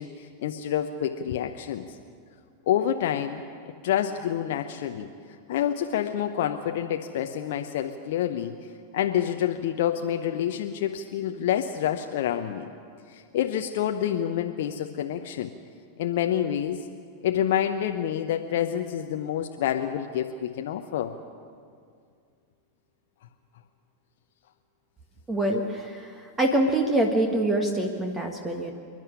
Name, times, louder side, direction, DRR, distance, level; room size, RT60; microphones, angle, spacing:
voice 1, 0.0-2.0 2.7-3.4 3.8-5.1 5.5-12.7 13.1-15.5 16.0-16.9 17.2-21.1, left 10 dB, 55° left, 5 dB, 0.8 m, -28 dB
voice 2, 25.3-26.1 26.4-28.7, right 1 dB, 10° right, 3 dB, 1.6 m, -25 dB
27.0 x 11.0 x 9.7 m, 2.3 s
figure-of-eight pair, 90°, 0 cm